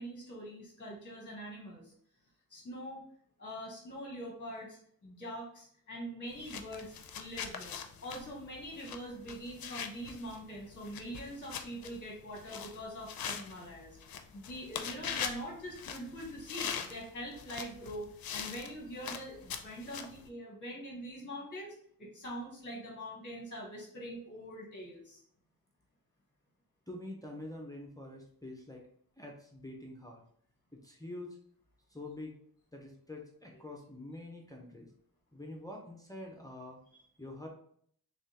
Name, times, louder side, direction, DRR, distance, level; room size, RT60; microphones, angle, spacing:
voice 1, 0.0-1.9 2.5-3.0 3.4-18.1 18.3-25.2 36.9-37.0, equal, 25° left, -2 dB, 1.0 m, -44 dB
sound 1, 6.3-20.3, left 7 dB, 65° left, 0.5 m, -43 dB
voice 2, 26.9-28.9 29.2-30.2 30.7-31.4 31.9-32.4 32.7-34.9 35.3-36.8 37.2-37.5, left 1 dB, 10° left, -1 dB, 0.6 m, -46 dB
3.4 x 3.2 x 2.8 m, 0.63 s
wide cardioid pair, 110°, 38 cm